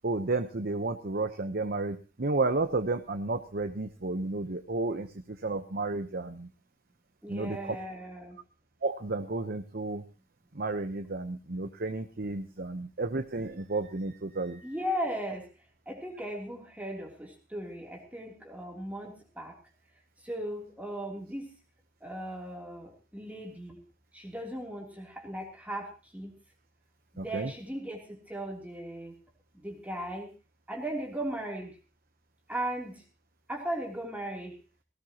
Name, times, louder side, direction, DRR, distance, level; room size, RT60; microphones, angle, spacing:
voice 1, 0.0-6.5 7.3-7.8 8.8-10.0 10.5-14.7 27.2-27.5, right 3 dB, 50° right, 7 dB, 1.0 m, -32 dB
voice 2, 7.2-8.4 14.6-15.5 15.8-19.5 20.2-21.6 22.0-23.8 24.1-26.4 27.1-29.2 29.5-30.3 30.7-31.8 32.5-33.0 33.5-34.5, right 1 dB, 10° right, -1 dB, 3.2 m, -37 dB
18.5 x 18.0 x 3.0 m, 0.32 s
head